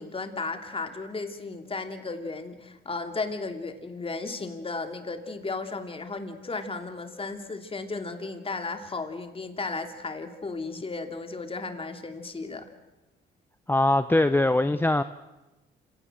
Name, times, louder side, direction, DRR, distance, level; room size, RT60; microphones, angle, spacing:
voice 1, 0.0-12.7, left 3 dB, 30° left, 6 dB, 2.8 m, -34 dB
voice 2, 13.7-15.0, left 2 dB, 10° left, 11 dB, 0.7 m, -22 dB
28.0 x 17.0 x 7.8 m, 1.1 s
cardioid pair, 90°, 20 cm